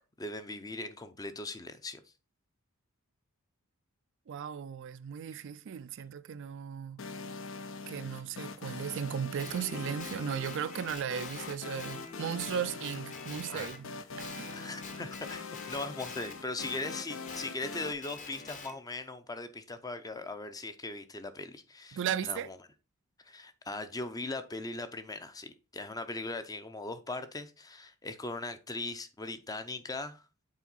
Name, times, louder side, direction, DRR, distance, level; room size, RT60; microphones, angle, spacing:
voice 1, 0.2-2.1 13.5-13.8 14.5-22.6 23.2-30.3, left 2 dB, 15° left, 0.6 m, -39 dB
voice 2, 4.3-7.0 7.9-13.9 14.2-14.5 21.9-22.5, right 8 dB, 60° right, 0.4 m, -36 dB
sound 1, 7.0-17.9, left 4 dB, 65° left, 0.6 m, -43 dB
Guitar, 9.4-13.8 14.2-18.8, left 4 dB, 35° left, 1.1 m, -47 dB
7.2 x 4.5 x 4.0 m
head